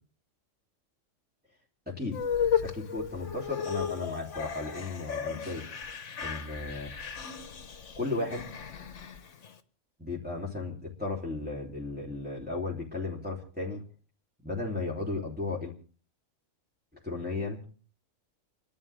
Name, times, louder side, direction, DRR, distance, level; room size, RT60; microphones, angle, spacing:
voice 1, 1.9-2.2 2.6-5.7 6.2-6.9 8.0-8.5 10.0-13.8 14.4-15.7 17.0-17.6, left 3 dB, 5° right, -4 dB, 3.3 m, -35 dB
sound 1, 2.1-9.5, left 7 dB, 65° left, 1.4 m, -34 dB
30.0 x 11.5 x 3.5 m, 0.41 s
omnidirectional pair, 1.4 m